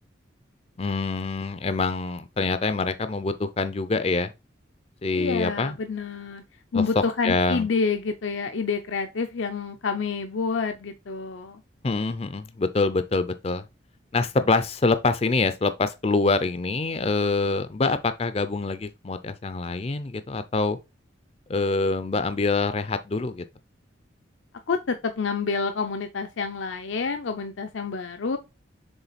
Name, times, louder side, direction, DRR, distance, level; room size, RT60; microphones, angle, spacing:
voice 1, 0.8-4.3 5.0-5.8 6.7-6.8 7.2-7.7 11.8-13.6 14.1-20.8 21.5-23.4, left 3 dB, 30° left, 0.4 m, -25 dB
voice 2, 5.1-6.4 6.7-11.6 24.7-28.4, left 4 dB, 80° left, 0.6 m, -28 dB
7.0 x 3.8 x 4.1 m
head